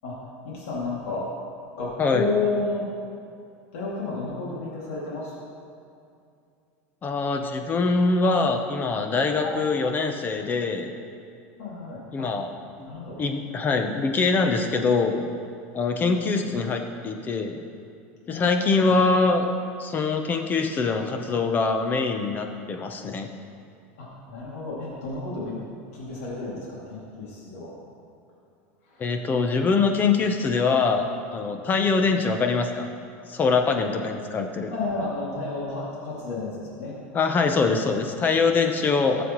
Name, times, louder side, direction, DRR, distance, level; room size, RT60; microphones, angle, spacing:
voice 1, 0.4-1.3 1.8-2.9 3.7-5.5 9.4-9.6 11.6-12.3 12.8-13.2 16.1-16.6 18.3-18.9 24.0-25.6 25.9-27.7 28.9-29.1 31.8-32.0 34.7-37.0, left 3 dB, 85° left, -6 dB, 2.4 m, -32 dB
voice 2, 7.0-10.9 12.1-12.5 12.8-12.9 13.2-15.2 15.7-17.6 18.3-19.5 19.8-23.3 29.0-32.9 33.3-34.7 37.1-39.2, left 4 dB, 25° left, 5 dB, 0.8 m, -23 dB
15.0 x 7.0 x 3.1 m, 2.4 s
supercardioid pair, 135°, 7 cm